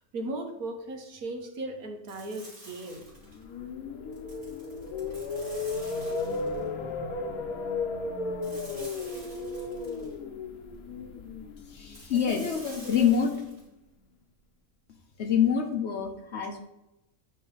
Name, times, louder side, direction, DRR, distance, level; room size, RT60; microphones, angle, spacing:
voice 1, 0.1-3.1, right 2 dB, 75° right, 3 dB, 1.5 m, -37 dB
sound 1, 2.1-3.4 4.1-6.7 8.4-10.1 11.9-13.6, right 1 dB, 40° right, 3.0 m, -49 dB
sound 2, 3.1-13.3, left 3 dB, 75° left, 1.3 m, -35 dB
voice 2, 11.7-13.4 15.2-16.6, left 7 dB, 55° left, 4 dB, 0.9 m, -26 dB
9.4 x 3.3 x 3.9 m, 0.93 s
omnidirectional pair, 1.6 m